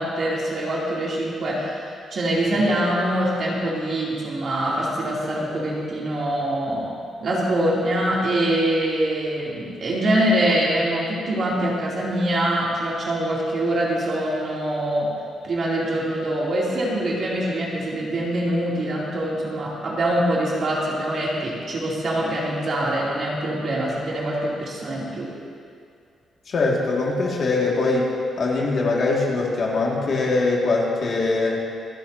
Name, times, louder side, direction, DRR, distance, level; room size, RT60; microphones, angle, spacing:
voice 1, 0.0-6.9 7.2-15.1 15.4-25.3, right 1 dB, 40° right, -5 dB, 2.8 m, -24 dB
voice 2, 26.5-28.1 28.4-31.7, left 3 dB, 45° left, -3 dB, 2.0 m, -22 dB
26.5 x 10.5 x 2.8 m, 2.4 s
cardioid pair, 170°, 0 cm